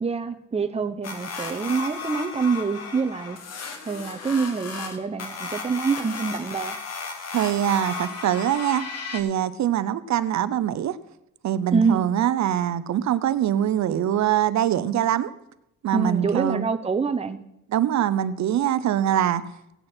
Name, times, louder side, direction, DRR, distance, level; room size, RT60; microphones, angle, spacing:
voice 1, 0.0-3.4 3.9-6.8 11.7-12.0 15.9-17.4, right 5 dB, 20° right, 8 dB, 0.8 m, -26 dB
sound 1, 1.0-9.2, left 4 dB, 60° left, 1.6 m, -35 dB
voice 2, 7.3-11.0 11.4-15.3 15.8-16.7 17.7-19.4, right 11 dB, 65° right, 15 dB, 0.8 m, -23 dB
17.0 x 8.7 x 4.5 m, 0.85 s
cardioid pair, 90°, 30 cm